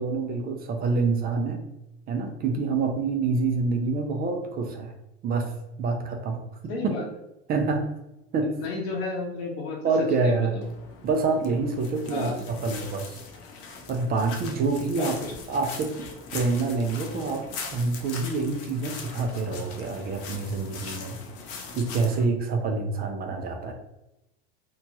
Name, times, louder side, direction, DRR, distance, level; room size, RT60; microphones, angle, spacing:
voice 1, 0.0-1.6 2.1-4.9 5.2-5.5 5.8-6.9 7.5-7.9 8.3-8.5 9.8-10.6 11.0-13.2 13.9-15.2 15.5-15.9 16.3-17.4 17.7-21.2 21.8-23.7, right 4 dB, 30° right, 3 dB, 0.5 m, -26 dB
voice 2, 6.7-7.0 8.6-9.8 10.2-10.5 12.1-12.4 15.0-15.3, left 3 dB, 80° left, -1 dB, 1.0 m, -32 dB
sound 1, 10.6-22.2, left 5 dB, 45° left, 0.6 m, -40 dB
2.9 x 2.2 x 2.7 m, 0.88 s
supercardioid pair, 110°, 30 cm